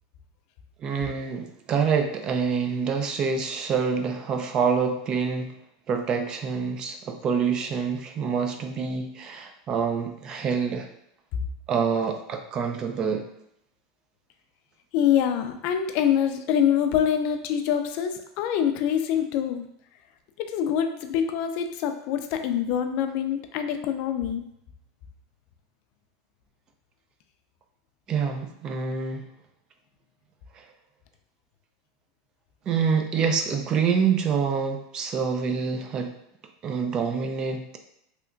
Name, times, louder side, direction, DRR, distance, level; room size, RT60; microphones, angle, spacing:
voice 1, 0.8-5.5 5.9-10.9 11.7-13.2 28.1-29.2 30.6-30.7 32.7-36.1 36.6-37.8, right 6 dB, 30° right, 5 dB, 0.4 m, -26 dB
voice 2, 14.9-19.7 20.4-24.4, left 9 dB, 50° left, 7 dB, 0.3 m, -25 dB
3.3 x 2.8 x 2.5 m, 0.78 s
supercardioid pair, 145°, 3 cm